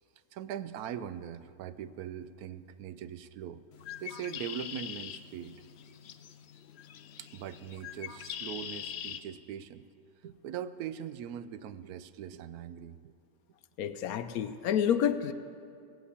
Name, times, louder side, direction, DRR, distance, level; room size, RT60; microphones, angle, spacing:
voice 1, 0.3-3.6 4.0-5.6 7.2-9.9 10.2-13.1 13.9-14.0, right 9 dB, 70° right, 14 dB, 1.0 m, -41 dB
Bird, 3.7-9.2, left 9 dB, 85° left, 0.5 m, -43 dB
voice 2, 13.8-15.3, left 9 dB, 70° left, 11 dB, 1.0 m, -29 dB
17.5 x 8.1 x 8.4 m, 2.5 s
omnidirectional pair, 1.8 m